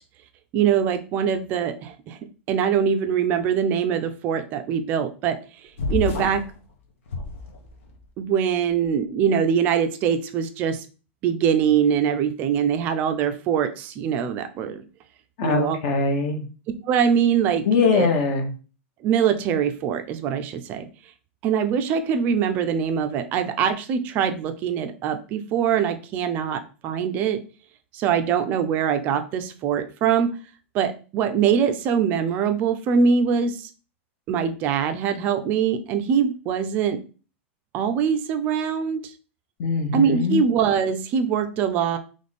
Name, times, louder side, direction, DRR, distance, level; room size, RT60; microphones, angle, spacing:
voice 1, 0.5-2.2 2.5-5.4 5.9-6.4 8.2-10.9 11.2-14.8 15.4-15.8 16.8-17.6 17.9-18.1 19.0-20.9 21.4-27.4 27.9-30.4 30.7-33.7 34.3-37.0 37.7-39.0 39.9-42.0, right 7 dB, 25° right, 8 dB, 0.4 m, -23 dB
sound 1, 5.8-6.5 7.1-8.0, left 4 dB, 85° left, 1.2 m, -29 dB
voice 2, 15.4-16.4 17.7-18.5 39.6-40.4, left 4 dB, 40° left, 4 dB, 0.9 m, -22 dB
3.5 x 3.1 x 4.1 m, 0.36 s
supercardioid pair, 175°, 7 cm